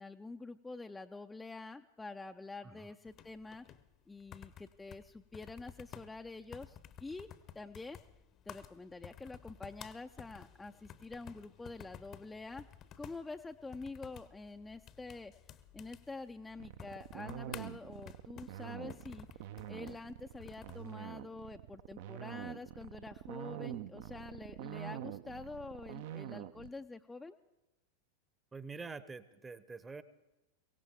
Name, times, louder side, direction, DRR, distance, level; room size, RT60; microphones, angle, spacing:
voice 1, 0.0-3.7 4.1-7.3 7.5-8.0 8.5-12.7 13.0-15.3 15.7-27.4, left 3 dB, 10° left, 6 dB, 0.4 m, -47 dB
sound 1, 3.0-20.9, left 9 dB, 30° left, 0.8 m, -54 dB
sound 2, 16.6-26.7, right 12 dB, 50° right, 0.5 m, -45 dB
voice 2, 28.5-30.0, right 4 dB, 15° right, 16 dB, 0.8 m, -46 dB
22.5 x 17.5 x 3.6 m, 1.0 s
figure-of-eight pair, 90°, 0 cm